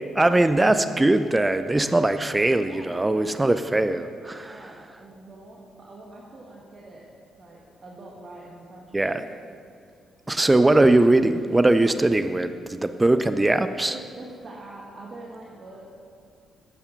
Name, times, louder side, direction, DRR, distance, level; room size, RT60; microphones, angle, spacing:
voice 1, 0.1-4.6 8.9-9.2 10.3-13.9, right 2 dB, 20° right, 10 dB, 0.6 m, -20 dB
voice 2, 2.2-4.0 4.4-7.1 7.4-9.3 13.9-15.9, right 2 dB, 45° right, -3 dB, 1.7 m, -44 dB
11.0 x 8.7 x 5.8 m, 2.3 s
hypercardioid pair, 40°, 0 cm